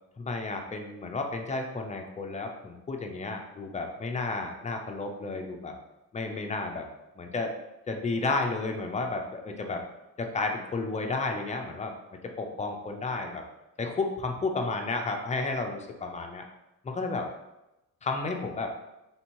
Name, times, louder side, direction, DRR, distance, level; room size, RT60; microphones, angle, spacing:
voice 1, 0.2-5.7 6.1-6.9 7.2-7.5 7.9-9.8 10.2-11.9 12.4-13.4 13.8-16.4 16.8-17.3 18.0-18.7, left 3 dB, 20° left, 3 dB, 0.5 m, -32 dB
3.4 x 2.8 x 4.5 m, 0.95 s
cardioid pair, 140°, 35 cm